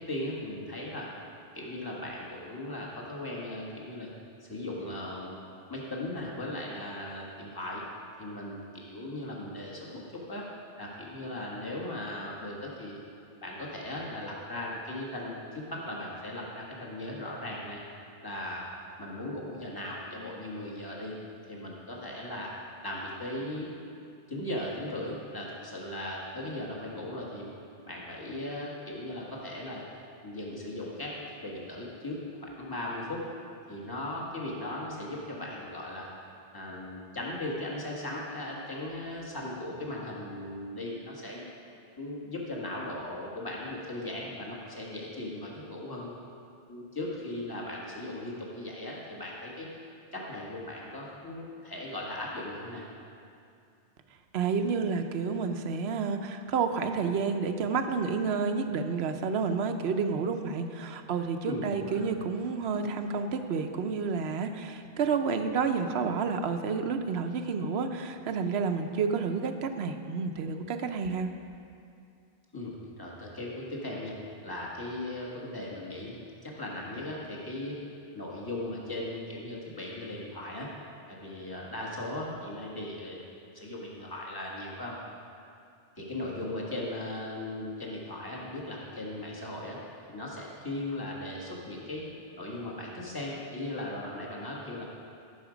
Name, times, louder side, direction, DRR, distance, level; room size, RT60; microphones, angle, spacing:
voice 1, 0.1-1.1 1.5-4.1 4.4-5.4 5.7-7.8 8.2-10.4 10.8-13.0 13.4-17.8 18.2-18.7 19.0-21.1 21.5-22.5 22.8-23.7 24.3-27.5 27.8-29.8 30.2-33.2 33.7-36.1 36.5-41.4 42.0-46.1 46.7-49.7 50.1-52.9 61.4-62.0 72.5-74.1 74.4-77.8 78.1-80.7 81.1-83.2 83.5-85.0 86.0-89.8 90.1-92.1 92.4-94.8, left 1 dB, 20° left, -4 dB, 1.6 m, -38 dB
voice 2, 54.3-71.3, right 5 dB, 75° right, 7 dB, 1.0 m, -30 dB
13.5 x 6.4 x 5.0 m, 2.5 s
omnidirectional pair, 1.1 m